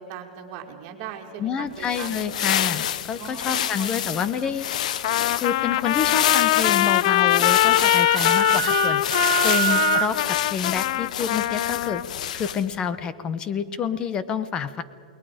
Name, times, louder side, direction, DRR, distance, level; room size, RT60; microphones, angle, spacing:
voice 1, 0.0-2.7 3.2-4.5, right 8 dB, 35° right, 3 dB, 2.6 m, -40 dB
voice 2, 1.4-4.7 5.4-9.0 9.4-12.0 12.3-14.8, left 7 dB, 20° left, 14 dB, 0.8 m, -28 dB
sound 1, 1.7-12.8, left 10 dB, 60° left, 0.8 m, -28 dB
Trumpet, 5.0-12.1, left 15 dB, 45° left, 0.4 m, -22 dB
Wind instrument woodwind instrument, 7.2-10.1, right 10 dB, 75° right, 1.7 m, -26 dB
28.5 x 20.5 x 5.1 m, 2.2 s
hypercardioid pair, 160°, 4 cm